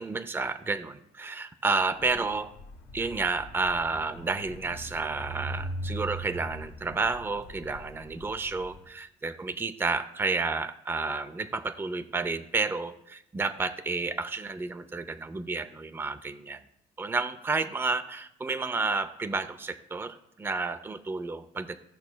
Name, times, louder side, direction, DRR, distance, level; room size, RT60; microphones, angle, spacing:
voice 1, 0.0-2.5 2.9-16.6 17.0-21.8, right 3 dB, 15° right, 9 dB, 0.5 m, -31 dB
sound 1, 2.0-8.8, right 1 dB, 90° left, 1.9 m, -41 dB
17.0 x 5.9 x 2.2 m, 0.79 s
cardioid pair, 110°, 17 cm